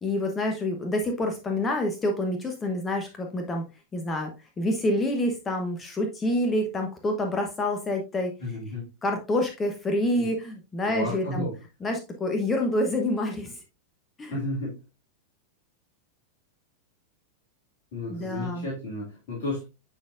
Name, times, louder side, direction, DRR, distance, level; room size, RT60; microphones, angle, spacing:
voice 1, 0.0-3.7 3.9-4.3 4.6-8.3 9.0-11.5 11.8-13.5 14.2-14.3 18.1-18.7, left 1 dB, 20° left, 3 dB, 1.0 m, -27 dB
voice 2, 8.4-8.9 10.2-10.3 10.8-11.6 14.3-14.8 17.9-19.6, left 1 dB, 50° left, -5 dB, 2.5 m, -32 dB
9.8 x 4.1 x 2.5 m, 0.28 s
figure-of-eight pair, 90°, 0 cm